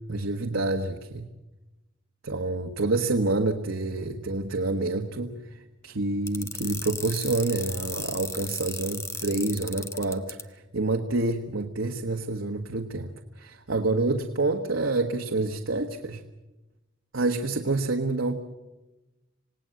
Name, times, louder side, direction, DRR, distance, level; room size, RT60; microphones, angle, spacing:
voice 1, 0.1-1.3 2.2-13.1 13.4-16.2 17.1-18.4, right 2 dB, 85° right, 3 dB, 1.4 m, -28 dB
sound 1, 6.3-10.4, left 4 dB, 15° left, 1.2 m, -35 dB
27.5 x 18.0 x 7.8 m, 1.0 s
head